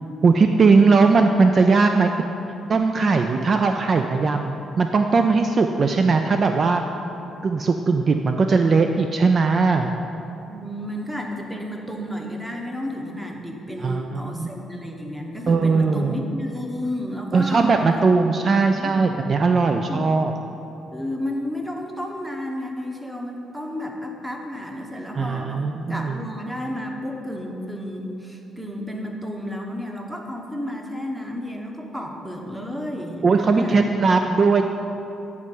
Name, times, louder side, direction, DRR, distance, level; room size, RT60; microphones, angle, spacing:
voice 1, 0.2-2.2 2.7-6.8 7.4-9.9 13.8-14.5 15.5-16.2 17.3-20.3 25.2-26.2 33.2-34.6, right 4 dB, 45° right, 5 dB, 0.3 m, -19 dB
voice 2, 10.5-18.9 19.9-20.3 20.9-25.6 25.9-33.8, left 1 dB, 5° right, 1 dB, 0.9 m, -32 dB
9.4 x 3.2 x 5.3 m, 3.0 s
cardioid pair, 90°, 0 cm